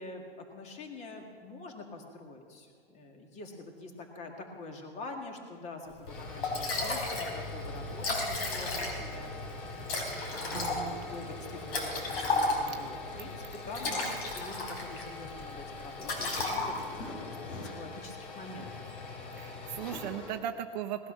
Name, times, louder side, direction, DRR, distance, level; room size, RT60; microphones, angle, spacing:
voice 1, 0.0-9.3 9.7-10.0 10.3-18.7, left 2 dB, 25° left, 3 dB, 2.1 m, -46 dB
sound 1, 5.9-20.4, left 2 dB, 60° left, 3.1 m, -42 dB
Liquid, 6.1-6.2 6.4-7.4 7.6-7.7 7.9-9.2 9.9-12.9 13.5-15.1 15.4-15.6 16.0-17.1, left 2 dB, 80° left, 4.0 m, -33 dB
voice 2, 10.5-11.1 19.4-21.1, right 11 dB, 50° right, 5 dB, 0.8 m, -37 dB
18.5 x 12.0 x 6.3 m, 2.1 s
hypercardioid pair, 150°, 29 cm